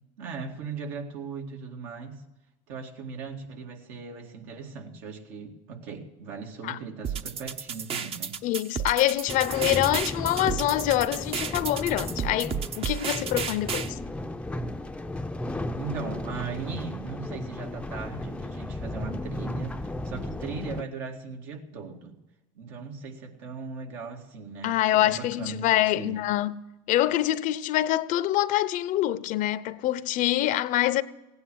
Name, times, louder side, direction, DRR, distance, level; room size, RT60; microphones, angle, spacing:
voice 1, 0.2-2.2 2.7-8.4 15.8-22.2 22.5-24.7 25.0-26.2, right 5 dB, 75° right, 2.2 m, -38 dB
sound 1, 7.0-13.9, right 7 dB, 40° right, 0.9 m, -33 dB
voice 2, 8.4-14.0 24.6-31.0, left 14 dB, 60° left, 0.7 m, -25 dB
sound 2, 9.3-20.8, left 1 dB, 5° left, 0.6 m, -35 dB
16.0 x 9.6 x 6.2 m
supercardioid pair, 100°, 16 cm